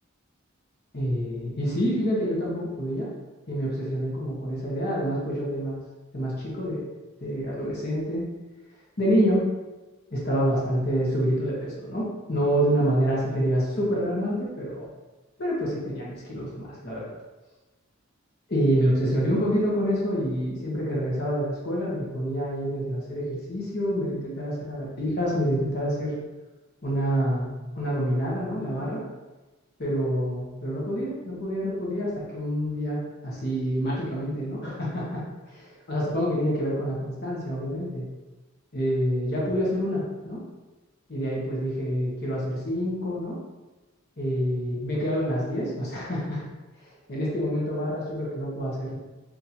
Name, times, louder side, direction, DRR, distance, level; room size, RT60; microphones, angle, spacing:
voice 1, 0.9-3.1 3.5-5.8 6.1-6.8 7.2-8.2 9.0-9.4 10.1-14.9 15.4-17.1 18.5-26.1 26.8-29.0 29.8-35.2 35.5-38.0 38.7-40.4 41.1-43.4 44.2-46.4 47.1-49.0, equal, 50° left, -5 dB, 1.2 m, -27 dB
4.2 x 2.9 x 2.7 m, 1.2 s
head